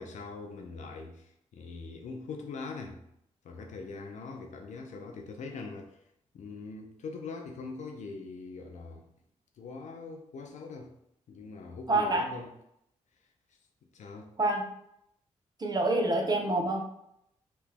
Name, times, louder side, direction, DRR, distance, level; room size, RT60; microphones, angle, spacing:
voice 1, 0.0-3.0 3.4-6.0 6.3-9.1 9.6-10.9 11.3-12.5 13.9-14.3, left 4 dB, 75° left, 0.5 m, -42 dB
voice 2, 11.9-12.2 14.4-14.6 15.6-16.8, right 2 dB, 35° right, 0.7 m, -26 dB
3.0 x 2.2 x 3.4 m
cardioid pair, 60°, 13 cm